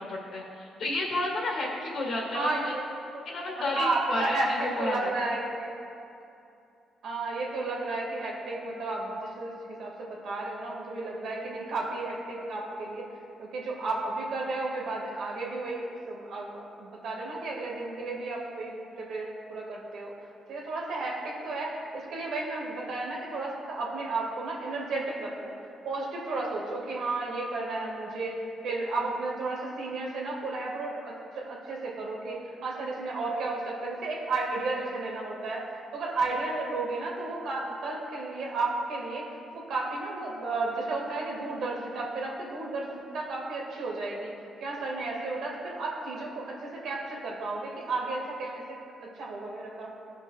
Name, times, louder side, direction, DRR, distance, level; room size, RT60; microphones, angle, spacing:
voice 1, 0.0-2.7 3.3-5.0, left 2 dB, 60° left, -1 dB, 2.0 m, -31 dB
voice 2, 2.3-2.8 3.1-3.2 3.6-4.5 4.8-5.7 7.0-13.0 13.4-20.1 20.5-25.5 25.8-39.2 39.5-44.3 44.6-48.6 49.2-49.9, right 3 dB, 75° right, -3 dB, 2.0 m, -33 dB
16.5 x 5.6 x 2.4 m, 2.7 s
cardioid pair, 90°, 0 cm